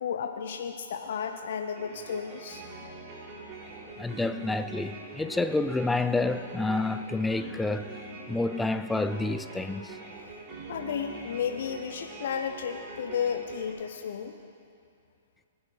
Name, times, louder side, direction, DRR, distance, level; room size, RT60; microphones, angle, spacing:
voice 1, 0.0-2.6 10.7-14.4, left 7 dB, 65° left, 0.6 m, -33 dB
sound 1, 1.8-13.7, right 3 dB, 40° right, 3.5 m, -44 dB
voice 2, 4.0-7.9 8.3-10.0, left 2 dB, 5° left, 0.4 m, -29 dB
19.5 x 11.0 x 3.3 m
hypercardioid pair, 115°, 0 cm